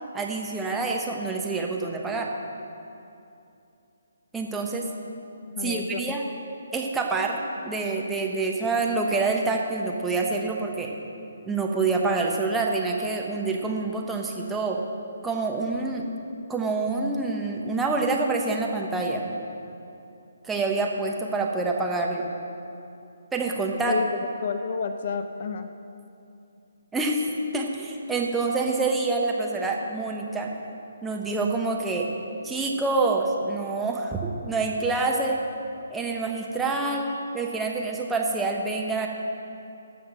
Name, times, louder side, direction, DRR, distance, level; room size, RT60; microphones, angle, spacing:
voice 1, 0.1-2.3 4.3-4.9 5.6-6.2 6.7-10.9 11.5-14.8 15.2-16.0 16.5-19.3 20.4-22.3 23.3-24.0 26.9-27.3 27.5-30.5 31.0-32.1 32.4-35.4 35.9-37.1 37.3-39.1, right 3 dB, 5° right, -1 dB, 1.1 m, -27 dB
voice 2, 5.4-6.0 23.9-24.1 24.4-25.7, left 5 dB, 50° left, 8 dB, 0.6 m, -30 dB
14.5 x 5.8 x 6.6 m, 2.7 s
figure-of-eight pair, 140°, 0 cm